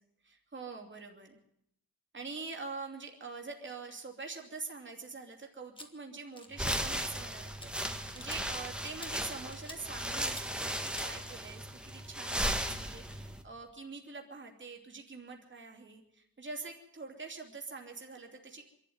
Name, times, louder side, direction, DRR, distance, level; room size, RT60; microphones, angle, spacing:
voice 1, 0.2-1.4 2.1-18.7, right 4 dB, 30° right, 2 dB, 2.9 m, -45 dB
sound 1, 5.8-5.9 6.4-6.8 7.0-7.3 7.6-7.7 8.1-8.4 8.9-9.1 9.5-9.8 10.2-10.5 10.8-11.1, left 1 dB, 15° left, 2.0 m, -47 dB
sound 2, 6.5-13.4, equal, 5° right, 1.6 m, -36 dB
25.5 x 12.5 x 9.5 m, 0.74 s
wide cardioid pair, 170°, 37 cm